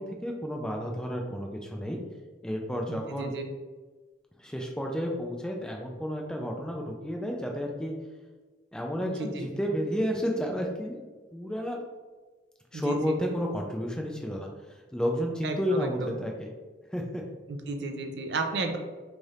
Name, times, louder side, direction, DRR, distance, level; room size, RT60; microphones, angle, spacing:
voice 1, 0.0-2.0 2.4-3.3 4.4-7.9 8.7-11.0 11.3-11.8 12.7-16.5 16.9-17.2, equal, 5° left, 1 dB, 0.3 m, -31 dB
voice 2, 2.9-3.5 9.0-9.5 12.7-13.1 15.4-16.1 17.5-18.8, right 3 dB, 65° right, 4 dB, 0.5 m, -33 dB
3.3 x 2.4 x 4.0 m, 1.3 s
head